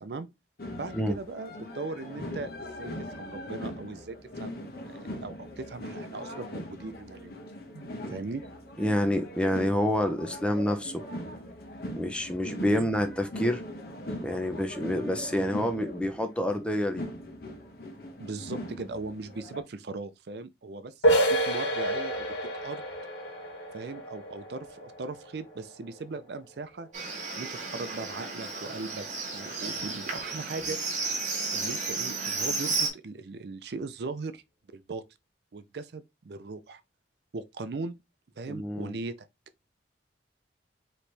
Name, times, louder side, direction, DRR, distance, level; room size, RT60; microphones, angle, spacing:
sound 1, 0.6-19.6, left 1 dB, 55° left, 1.1 m, -41 dB
voice 1, 0.7-7.3 7.7-8.4 12.7-12.9 18.2-22.3 22.6-22.9 23.7-26.9 27.4-29.1 29.3-30.8 31.5-34.4 34.7-35.0 35.5-36.8 37.3-38.0 38.4-39.3, right 3 dB, 60° right, 0.5 m, -39 dB
voice 2, 8.8-11.0 11.9-13.6 14.2-17.0 38.5-39.0, left 1 dB, 5° left, 0.6 m, -28 dB
sound 2, 21.0-26.5, right 1 dB, 85° left, 1.5 m, -29 dB
Livestock farm animals working animals, 26.9-32.9, right 4 dB, 40° right, 1.4 m, -33 dB
4.3 x 3.0 x 3.3 m
head